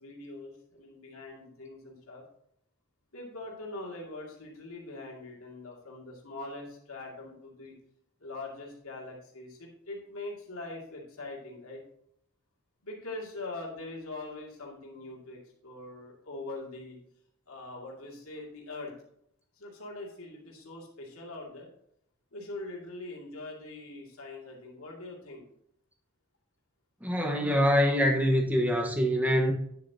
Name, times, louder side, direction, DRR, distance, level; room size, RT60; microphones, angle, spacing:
voice 1, 0.0-2.2 3.1-7.7 8.2-11.8 12.8-17.0 17.5-18.9 19.6-21.7 22.3-25.4, left 2 dB, 75° left, -2 dB, 2.5 m, -42 dB
voice 2, 27.0-29.5, equal, 10° right, 1 dB, 1.3 m, -24 dB
9.6 x 7.5 x 2.9 m, 0.71 s
head